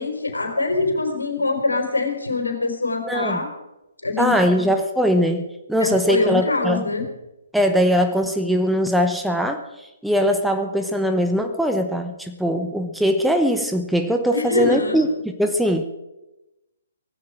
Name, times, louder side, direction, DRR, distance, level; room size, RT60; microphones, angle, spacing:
voice 1, 0.0-3.5 4.0-4.5 5.8-7.1 14.3-15.1, left 3 dB, 75° left, 5 dB, 4.3 m, -24 dB
voice 2, 3.1-3.4 4.2-6.8 7.5-15.9, equal, ahead, 6 dB, 0.9 m, -21 dB
18.0 x 15.5 x 4.9 m, 0.96 s
figure-of-eight pair, 130°, 0 cm